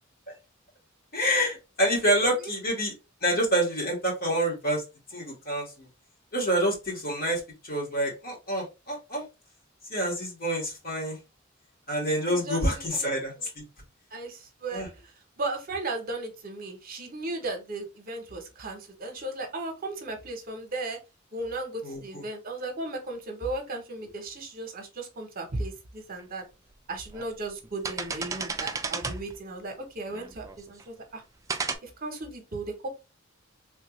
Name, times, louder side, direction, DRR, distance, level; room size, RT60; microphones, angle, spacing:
voice 1, 1.1-2.9 3.2-4.8 5.1-5.9 6.3-9.2 9.9-11.2 11.9-13.6 14.7-14.9 21.8-22.2, equal, 50° left, -2 dB, 1.6 m, -27 dB
voice 2, 12.3-13.1 14.1-14.9 15.4-21.0 21.3-26.4 26.9-31.2 31.8-32.9, right 2 dB, 45° right, 3 dB, 0.8 m, -36 dB
sound 1, 26.2-26.3 26.9-27.3 27.6-29.4 30.1-30.8 31.5-31.8, right 4 dB, 15° right, 0.3 m, -33 dB
3.3 x 2.4 x 3.0 m, 0.27 s
head